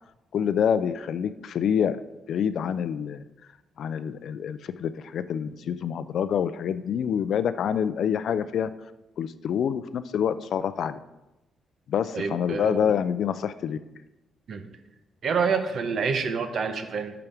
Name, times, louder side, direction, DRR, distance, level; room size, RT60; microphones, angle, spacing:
voice 1, 0.3-2.0 2.3-3.2 3.8-8.7 9.2-11.0 11.9-13.8, left 8 dB, 65° left, 13 dB, 0.4 m, -27 dB
voice 2, 12.1-12.9 14.5-14.7 15.2-17.2, right 5 dB, 55° right, 8 dB, 0.8 m, -27 dB
10.5 x 5.8 x 3.4 m, 1.0 s
cardioid pair, 115°, 0 cm